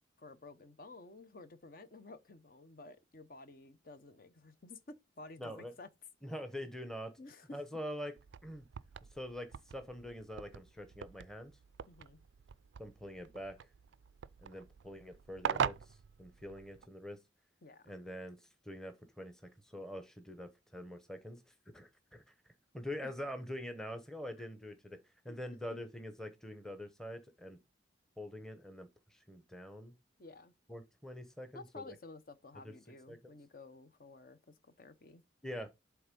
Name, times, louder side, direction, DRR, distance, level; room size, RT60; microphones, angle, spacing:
voice 1, 0.2-4.8 5.2-5.9 7.2-7.6 11.9-12.2 17.6-18.0 23.0-23.1 25.3-25.4 25.7-25.8 30.2-30.5 31.5-35.2, left 3 dB, 50° left, 0.8 m, -53 dB
voice 2, 5.4-5.7 6.2-7.1 7.5-8.1 8.4-8.6 9.1-11.5 12.8-13.6 14.4-17.2 17.9-22.3 22.7-25.0 25.2-27.6 28.2-29.9 30.7-31.9 32.6-32.7 33.1-33.3 35.4-35.7, equal, 5° left, 0.8 m, -45 dB
phone dial, 8.2-16.9, right 7 dB, 75° right, 0.3 m, -42 dB
7.8 x 3.4 x 5.2 m
head